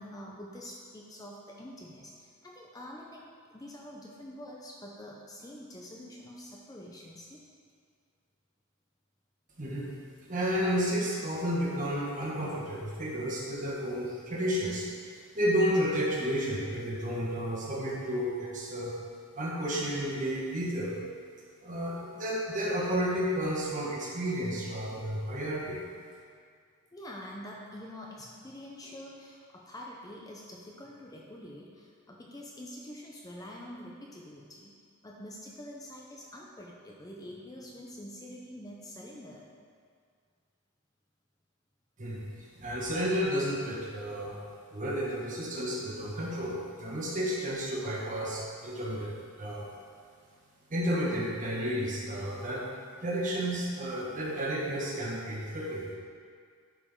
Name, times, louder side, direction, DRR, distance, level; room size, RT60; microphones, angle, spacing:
voice 1, 0.0-3.3 3.5-7.4 26.9-34.7 35.0-39.5, left 1 dB, 15° left, -2 dB, 0.6 m, -46 dB
voice 2, 10.3-14.8 15.3-19.0 19.3-20.9 21.6-25.8 42.0-44.4 44.7-49.7 50.7-52.6 53.0-55.9, equal, 35° right, -4 dB, 1.4 m, -31 dB
11.0 x 5.0 x 3.8 m, 2.1 s
head